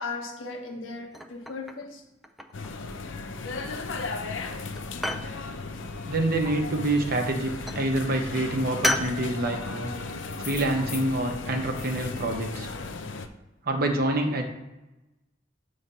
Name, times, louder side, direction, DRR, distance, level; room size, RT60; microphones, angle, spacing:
voice 1, 0.0-2.0 6.4-6.5 7.2-7.3 9.5-9.6 11.3-11.4, left 3 dB, 90° left, 1 dB, 1.3 m, -37 dB
sound 1, 1.1-1.9 2.2-2.9 3.7-4.2 4.4-5.3 6.8-7.3 7.7-7.9 8.8-9.2, equal, ahead, 0.4 m, -31 dB
sound 2, 2.5-13.3, left 3 dB, 70° left, 0.5 m, -36 dB
voice 2, 6.0-9.9 10.4-12.7 13.7-14.4, right 2 dB, 50° right, 4 dB, 0.9 m, -27 dB
7.3 x 3.2 x 5.5 m, 1.0 s
head